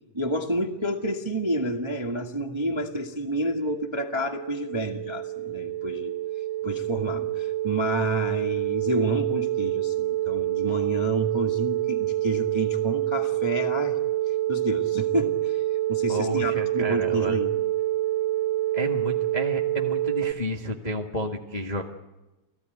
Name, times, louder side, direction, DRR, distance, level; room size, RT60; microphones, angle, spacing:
voice 1, 0.1-6.1 6.6-14.0 14.3-15.6 15.9-17.5, right 1 dB, 25° right, 3 dB, 0.6 m, -29 dB
sound 1, 3.3-20.3, right 14 dB, 70° right, 3.2 m, -27 dB
voice 2, 16.1-17.4 18.7-21.8, equal, 60° left, 1 dB, 0.4 m, -31 dB
30.0 x 17.0 x 9.3 m, 1.1 s
omnidirectional pair, 4.0 m